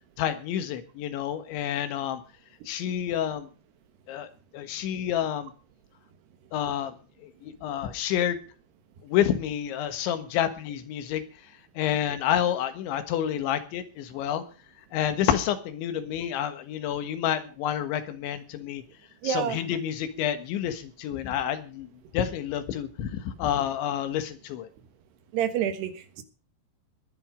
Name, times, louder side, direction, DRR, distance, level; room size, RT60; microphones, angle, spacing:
voice 1, 0.2-2.2 2.7-3.5 4.1-5.5 6.5-6.9 7.2-8.4 9.0-11.2 11.8-14.4 14.9-18.8 19.2-21.9 22.1-24.7, left 10 dB, 80° left, 10 dB, 3.8 m, -29 dB
voice 2, 19.2-19.6 25.3-26.2, right 9 dB, 70° right, 10 dB, 3.4 m, -28 dB
19.0 x 11.0 x 5.1 m, 0.38 s
omnidirectional pair, 5.3 m